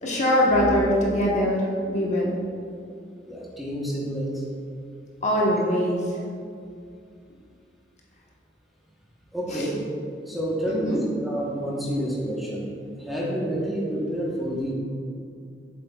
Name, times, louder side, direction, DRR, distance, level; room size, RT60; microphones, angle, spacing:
voice 1, 0.0-2.3 5.2-6.0 9.5-9.7 10.7-11.0, equal, 40° left, -4 dB, 1.1 m, -22 dB
voice 2, 3.3-4.4 9.3-9.8 10.3-10.9 11.2-12.7 13.0-14.7, equal, ahead, -6 dB, 1.0 m, -28 dB
7.8 x 7.6 x 2.3 m, 2.4 s
head